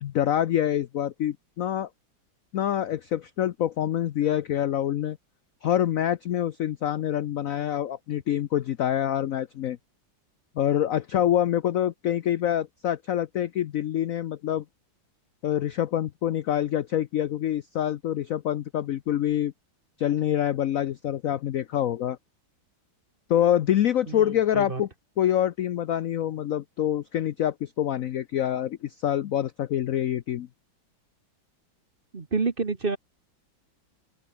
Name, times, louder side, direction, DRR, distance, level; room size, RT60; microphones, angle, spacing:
voice 1, 0.0-1.9 2.5-5.2 5.6-9.8 10.6-14.6 15.4-19.5 20.0-22.2 23.3-24.9 25.2-30.5, left 11 dB, 70° left, 0.8 m, -26 dB
voice 2, 32.1-33.0, right 4 dB, 30° right, 1.3 m, -28 dB
open air
omnidirectional pair, 2.1 m